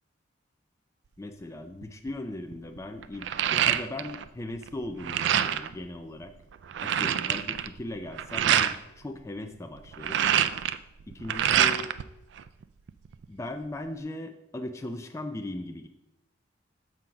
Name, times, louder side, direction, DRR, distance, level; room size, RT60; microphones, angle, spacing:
voice 1, 1.2-6.3 6.8-10.2 11.1-11.9 13.3-15.9, left 1 dB, 15° left, 6 dB, 0.3 m, -38 dB
sound 1, 1.8-2.1 2.5-4.3 4.6-5.7 6.2-6.3 6.5-8.8 9.8-12.0 12.4-13.3, right 9 dB, 65° right, 0.3 m, -26 dB
7.3 x 3.8 x 5.6 m, 0.90 s
head